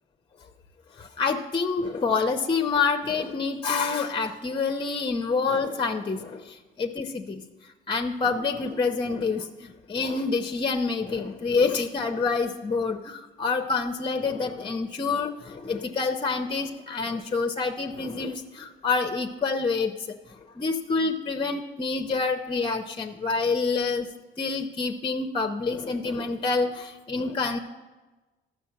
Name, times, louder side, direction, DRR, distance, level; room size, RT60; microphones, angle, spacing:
voice 1, 1.0-7.4 7.9-20.2 20.6-24.1 24.4-27.6, left 4 dB, 25° left, 6 dB, 0.7 m, -27 dB
12.5 x 6.4 x 7.6 m, 1.2 s
cardioid pair, 90°, 20 cm